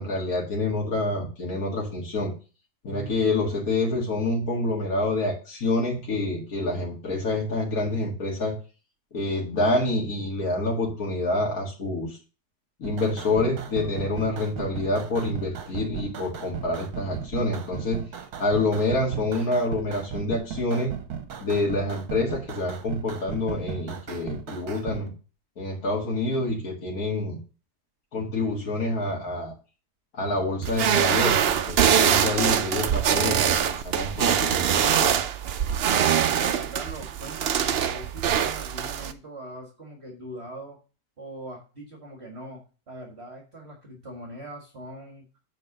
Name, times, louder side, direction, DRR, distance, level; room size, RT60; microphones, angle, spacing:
voice 1, 0.0-2.3 2.8-8.6 9.1-12.2 12.8-18.0 18.4-20.9 21.4-25.1 25.6-27.4 28.1-29.5 30.1-35.2, left 2 dB, 55° left, -3 dB, 2.4 m, -27 dB
sound 1, 12.8-25.0, right 8 dB, 65° right, 1.5 m, -37 dB
sound 2, 30.6-39.1, right 9 dB, 80° right, 0.5 m, -23 dB
voice 2, 35.9-40.8 41.2-45.2, right 1 dB, 40° right, 1 dB, 2.0 m, -41 dB
7.9 x 4.6 x 6.6 m, 0.34 s
omnidirectional pair, 1.8 m